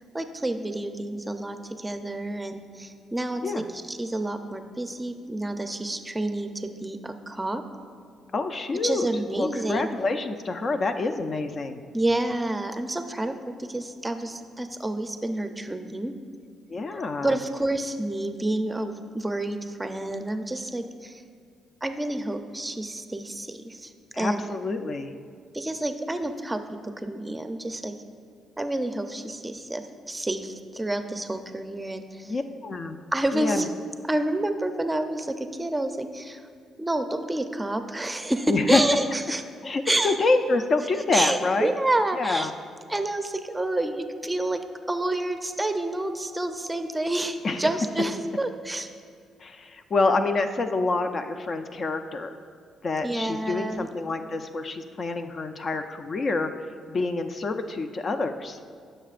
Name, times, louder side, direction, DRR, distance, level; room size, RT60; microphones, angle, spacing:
voice 1, 0.1-7.6 8.8-9.9 11.9-16.1 17.2-21.2 21.8-23.9 24.2-24.4 25.5-27.9 28.6-32.3 33.1-33.7 34.1-36.4 36.8-39.4 39.9-40.2 41.1-42.5 42.9-44.6 44.9-48.9 53.0-53.9, right 1 dB, 15° right, 7 dB, 0.6 m, -29 dB
voice 2, 8.3-9.1 9.4-11.8 16.7-17.4 24.1-25.1 32.3-33.0 33.3-33.7 38.5-38.8 39.6-41.7 42.2-42.5 47.4-47.6 49.4-52.4 52.8-56.5 56.9-58.6, left 3 dB, 45° left, 7 dB, 0.5 m, -27 dB
16.0 x 6.6 x 2.5 m, 2.1 s
cardioid pair, 90°, 0 cm